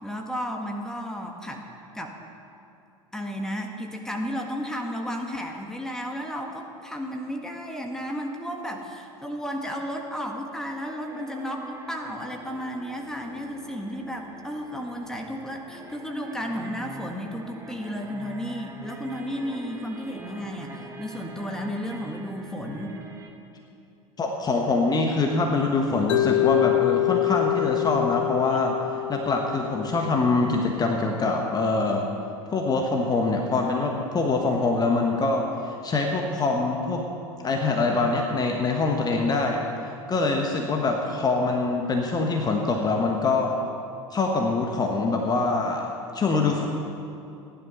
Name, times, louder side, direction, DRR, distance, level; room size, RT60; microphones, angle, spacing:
voice 1, 0.0-1.6 1.9-2.2 3.1-23.0, equal, 5° left, 2 dB, 1.6 m, -33 dB
sound 1, 10.8-23.3, right 1 dB, 15° right, 1.7 m, -44 dB
voice 2, 24.2-32.1 32.5-37.1 37.4-43.6 44.1-46.6, left 3 dB, 25° left, 2 dB, 1.3 m, -24 dB
Mallet percussion, 26.1-30.2, left 18 dB, 65° left, 0.7 m, -25 dB
15.5 x 11.0 x 5.7 m, 2.8 s
figure-of-eight pair, 75°, 17 cm